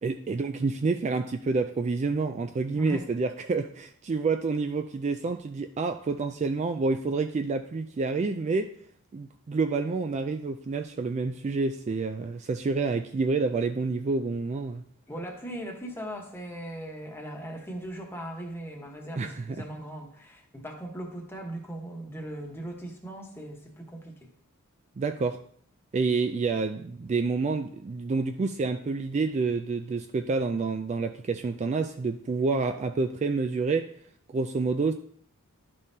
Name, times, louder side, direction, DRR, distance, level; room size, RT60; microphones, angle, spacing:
voice 1, 0.0-8.7 9.1-14.8 19.2-19.6 25.0-25.4 25.9-33.9 34.3-34.9, right 4 dB, 30° right, 7 dB, 0.3 m, -28 dB
voice 2, 2.7-3.1 15.1-24.3, right 1 dB, 10° left, 1 dB, 1.1 m, -39 dB
11.5 x 5.4 x 2.7 m, 0.63 s
head